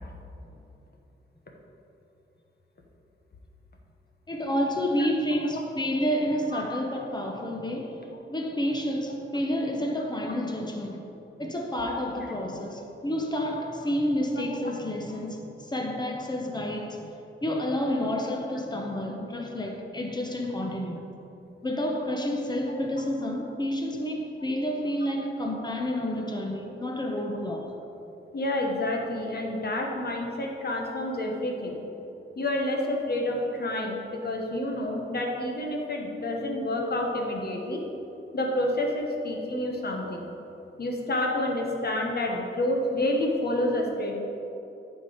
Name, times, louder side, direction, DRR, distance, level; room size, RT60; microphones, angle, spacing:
voice 1, 4.3-11.0 11.4-17.1 17.4-21.1 21.6-27.7, equal, 20° left, 0.9 m, -29 dB
voice 2, 14.3-14.7 22.7-22.8 28.3-31.8 32.4-37.8 38.3-40.3 40.8-44.2, left 1 dB, 50° left, 1.2 m, -29 dB
11.0 x 4.5 x 5.0 m
wide cardioid pair, 130°, 21 cm